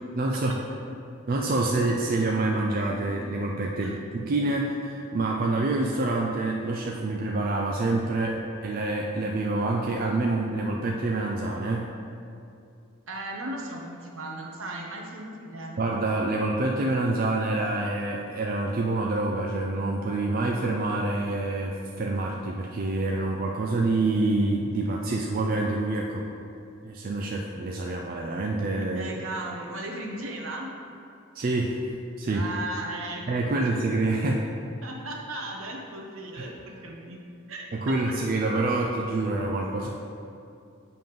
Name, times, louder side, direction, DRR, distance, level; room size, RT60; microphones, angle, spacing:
voice 1, 0.2-0.6 1.3-11.9 15.8-26.3 26.8-29.1 31.3-31.8 32.2-32.5 33.3-34.5 36.4-36.5 37.7-39.9, right 2 dB, 40° right, 0 dB, 0.4 m, -27 dB
voice 2, 13.1-15.8 28.9-30.7 32.3-33.7 34.8-37.2 37.5-37.6, right 2 dB, 70° right, 0 dB, 1.0 m, -36 dB
7.6 x 3.8 x 5.2 m, 2.6 s
head